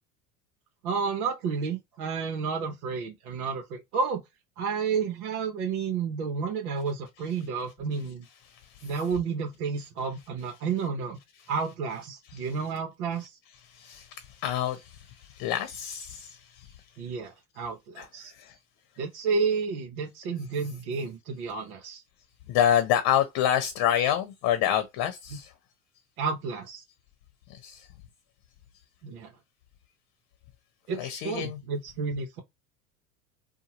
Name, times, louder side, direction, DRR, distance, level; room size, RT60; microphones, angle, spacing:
voice 1, 0.8-4.2 4.6-8.2 8.8-11.2 11.5-13.4 17.0-18.3 19.0-22.0 25.3-25.4 26.2-26.8 29.0-29.3 30.9-32.4, right 5 dB, 70° right, 0.9 m, -31 dB
voice 2, 8.5-8.9 12.3-12.5 13.7-16.7 18.0-18.6 22.5-25.5 27.5-27.9 30.9-31.6, left 10 dB, 50° left, 0.8 m, -28 dB
2.8 x 2.2 x 2.8 m
hypercardioid pair, 75°, 44 cm